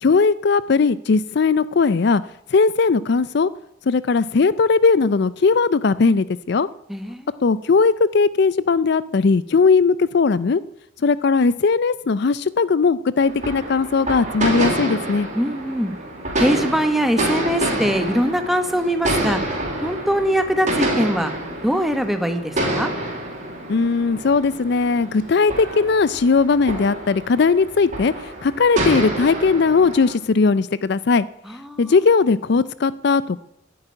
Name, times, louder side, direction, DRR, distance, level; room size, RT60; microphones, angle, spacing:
voice 1, 0.0-2.2 2.5-3.5 3.9-6.7 7.4-10.6 11.0-15.3 23.7-28.1 28.4-31.2 31.8-33.4, left 4 dB, 55° left, 17 dB, 0.4 m, -18 dB
voice 2, 6.9-7.3 15.3-15.9 16.4-19.4 19.8-21.3 21.6-22.9 31.5-31.9, equal, ahead, 8 dB, 1.1 m, -22 dB
sound 1, 13.2-30.1, right 1 dB, 40° right, 3.5 m, -27 dB
10.5 x 8.7 x 10.0 m, 0.79 s
head